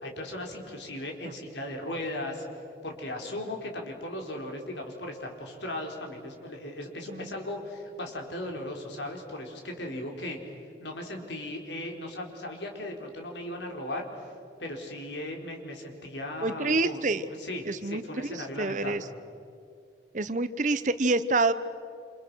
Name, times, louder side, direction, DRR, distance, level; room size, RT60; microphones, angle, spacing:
voice 1, 0.0-2.4 2.8-10.4 10.8-14.3 14.6-19.1, left 1 dB, 80° left, 2 dB, 4.4 m, -37 dB
voice 2, 16.4-17.2 17.7-19.0 20.1-21.5, right 3 dB, 45° right, 13 dB, 0.9 m, -27 dB
28.5 x 28.0 x 6.3 m, 2.5 s
head